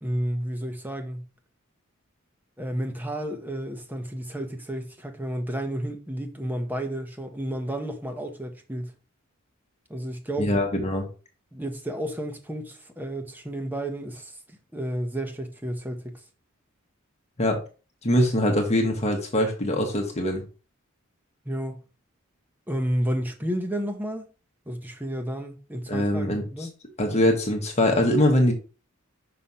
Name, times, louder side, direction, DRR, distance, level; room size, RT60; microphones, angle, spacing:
voice 1, 0.0-1.3 2.6-8.9 9.9-10.5 11.5-16.2 21.4-21.8 22.7-24.3 24.7-26.7, right 1 dB, 10° right, 1.0 m, -31 dB
voice 2, 10.4-11.1 17.4-17.6 18.0-20.4 25.9-26.4 27.0-28.5, left 1 dB, 30° left, 1.3 m, -22 dB
5.8 x 3.4 x 5.5 m
head